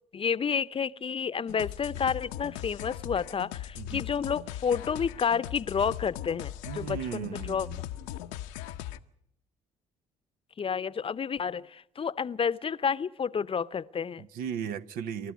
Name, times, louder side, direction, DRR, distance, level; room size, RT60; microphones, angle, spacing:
voice 1, 0.1-7.7 10.6-14.3, left 6 dB, 35° left, 0.8 m, -30 dB
sound 1, 1.5-9.0, left 12 dB, 80° left, 0.8 m, -39 dB
voice 2, 6.6-7.8 14.2-15.3, right 8 dB, 70° right, 0.9 m, -36 dB
28.5 x 13.0 x 9.4 m
hypercardioid pair, 50°, 16 cm